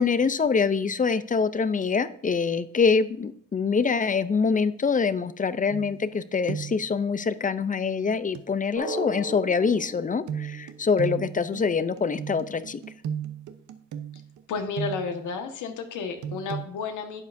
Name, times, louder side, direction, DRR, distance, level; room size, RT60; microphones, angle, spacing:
voice 1, 0.0-12.8, left 5 dB, 25° left, 14 dB, 0.6 m, -25 dB
sound 1, 5.7-6.2 6.5-6.9 8.3-8.5 10.3-15.3 16.2-16.7, right 8 dB, 75° right, 0.9 m, -35 dB
Drum, 8.7-11.3, right 1 dB, 50° right, 3.0 m, -36 dB
voice 2, 14.5-17.2, left 5 dB, 80° left, 5 dB, 1.5 m, -32 dB
11.5 x 8.2 x 2.7 m, 0.64 s
cardioid pair, 90°, 30 cm